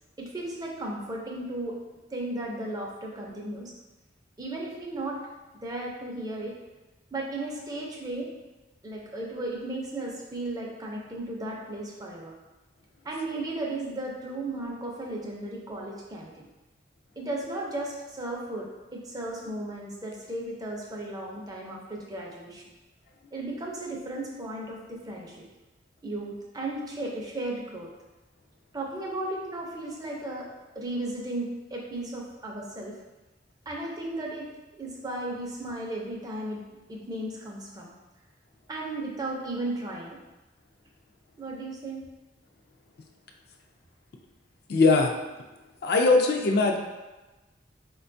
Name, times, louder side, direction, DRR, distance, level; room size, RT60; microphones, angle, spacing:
voice 1, 0.2-1.8 2.1-3.7 4.4-5.2 5.6-6.6 7.1-8.3 8.8-12.3 13.0-16.4 17.2-22.6 23.3-25.4 26.0-27.9 28.7-30.5 30.8-33.0 33.7-34.5 34.8-36.6 36.9-37.9 38.7-40.2 41.4-42.0, right 2 dB, 20° right, -2 dB, 0.4 m, -35 dB
voice 2, 44.7-45.1 45.8-46.8, left 3 dB, 55° left, 3 dB, 0.3 m, -20 dB
4.2 x 2.2 x 2.6 m, 1.1 s
head